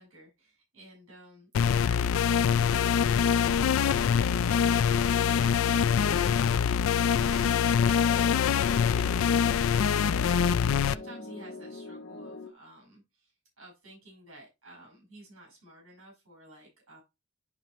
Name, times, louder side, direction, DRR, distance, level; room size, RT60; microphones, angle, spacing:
voice 1, 0.0-17.0, right 1 dB, 85° right, -3 dB, 5.3 m, -52 dB
sound 1, 1.5-10.9, left 7 dB, 80° left, 0.3 m, -24 dB
sound 2, 2.7-12.5, left 3 dB, 55° left, 1.0 m, -43 dB
sound 3, 3.5-9.4, right 2 dB, 45° right, 2.7 m, -53 dB
10.5 x 4.2 x 3.1 m, 0.23 s
head